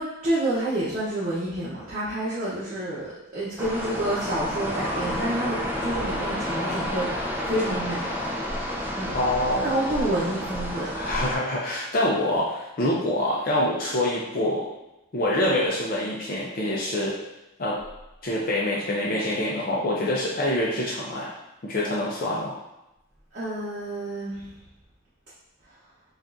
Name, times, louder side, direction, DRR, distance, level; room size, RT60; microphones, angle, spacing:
voice 1, 0.0-8.0 8.9-9.1 9.6-11.0 23.3-24.5, right 1 dB, 45° right, -10 dB, 0.9 m, -29 dB
sound 1, 3.6-11.4, equal, 10° right, 0.5 m, -30 dB
voice 2, 9.1-9.7 11.0-14.7 15.1-17.1 17.6-17.8 18.2-21.3 21.6-22.5, left 1 dB, 45° left, -4 dB, 0.5 m, -25 dB
5.1 x 2.4 x 2.6 m, 0.94 s
head